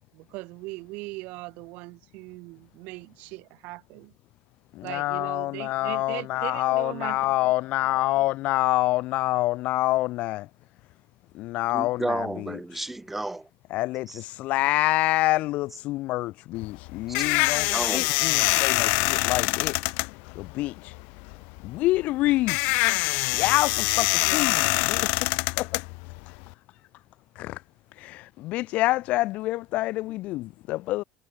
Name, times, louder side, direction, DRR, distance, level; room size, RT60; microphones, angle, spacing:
voice 1, 0.1-4.1 4.8-7.2, right 24 dB, 70° right, 2.1 m, -39 dB
voice 2, 4.7-10.5 11.3-12.6 13.7-19.8 20.3-20.9 21.6-22.6 23.3-25.3 25.6-25.8 27.4-27.6 28.0-31.0, left 18 dB, 60° left, 1.1 m, -27 dB
voice 3, 11.7-13.5 14.1-14.2 17.7-18.1, right 2 dB, 10° right, 1.1 m, -32 dB
sound 1, 16.6-26.5, left 33 dB, 80° left, 0.4 m, -25 dB
cardioid pair, 145°, 3 cm